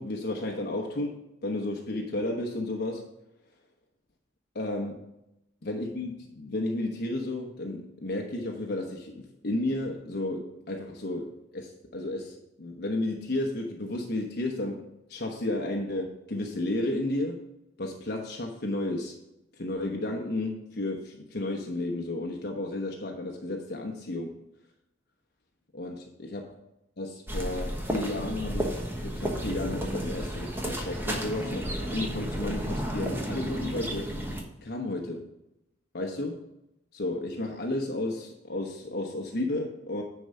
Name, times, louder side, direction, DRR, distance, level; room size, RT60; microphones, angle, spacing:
voice 1, 0.0-3.1 4.5-5.1 5.6-17.4 17.8-19.1 19.6-24.4 25.7-26.4 27.0-34.1 34.6-35.3 35.9-36.5 36.9-40.0, left 2 dB, 55° left, 1 dB, 1.0 m, -33 dB
sound 1, 27.3-34.4, equal, 10° right, 1.2 m, -32 dB
9.9 x 4.7 x 5.5 m, 0.86 s
head